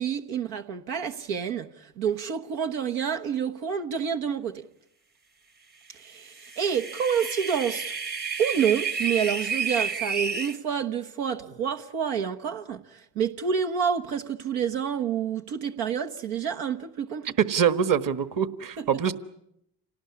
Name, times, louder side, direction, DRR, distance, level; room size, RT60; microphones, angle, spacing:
voice 1, 0.0-4.6 6.0-7.9 8.4-17.3, right 7 dB, 80° right, 1.4 m, -28 dB
sound 1, 6.3-10.5, right 5 dB, 20° right, 1.0 m, -30 dB
voice 2, 17.4-19.1, right 8 dB, 40° right, 1.5 m, -24 dB
27.0 x 18.5 x 9.7 m
supercardioid pair, 70°, 48 cm